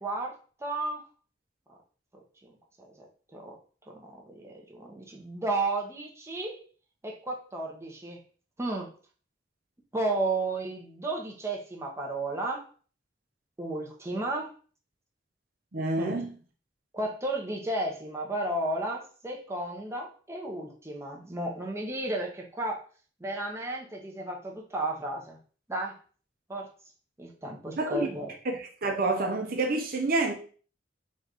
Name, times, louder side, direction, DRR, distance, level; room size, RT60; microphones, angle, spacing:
voice 1, 0.0-0.3 0.6-1.0 2.4-2.5 3.3-3.6 3.9-6.6 7.0-8.2 8.6-8.9 9.9-12.6 13.6-14.5 16.0-16.2 16.9-22.8 23.2-25.4 25.7-25.9 26.5-26.7 27.2-28.3, right 2 dB, 15° right, 0 dB, 0.9 m, -33 dB
voice 2, 15.7-16.4 27.8-28.1 28.4-30.4, right 2 dB, 55° right, 2 dB, 0.7 m, -28 dB
4.1 x 2.5 x 4.8 m, 0.40 s
head